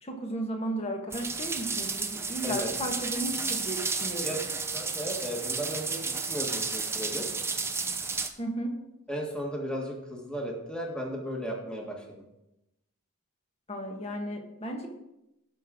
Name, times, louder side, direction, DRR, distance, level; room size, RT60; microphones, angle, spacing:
voice 1, 0.0-4.4 8.4-8.7 13.7-14.9, right 1 dB, 30° left, 3 dB, 1.5 m, -34 dB
sound 1, 1.1-8.3, right 4 dB, 10° right, 0.7 m, -32 dB
voice 2, 4.2-7.3 9.1-12.0, equal, 5° left, 0 dB, 1.7 m, -35 dB
17.5 x 6.2 x 3.8 m, 0.90 s
head